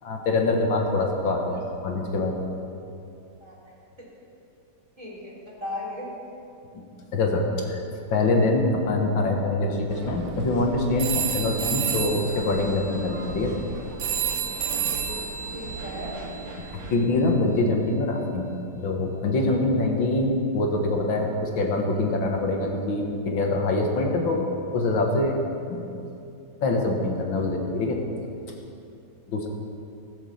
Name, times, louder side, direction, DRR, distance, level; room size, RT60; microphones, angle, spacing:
voice 1, 0.0-2.4 7.1-7.4 7.7-7.8 8.1-13.5 16.9-18.5 18.8-24.4 24.7-25.4 25.7-25.8 26.6-28.0 29.3-29.5, left 2 dB, 90° left, 1 dB, 2.2 m, -24 dB
voice 2, 5.0-6.1 15.5-16.2, left 1 dB, 15° right, -5 dB, 3.2 m, -36 dB
sound 1, 9.9-17.0, right 3 dB, 60° right, 1.4 m, -38 dB
sound 2, 11.0-17.1, right 8 dB, 80° right, 1.9 m, -31 dB
17.0 x 7.3 x 7.1 m, 2.7 s
omnidirectional pair, 2.0 m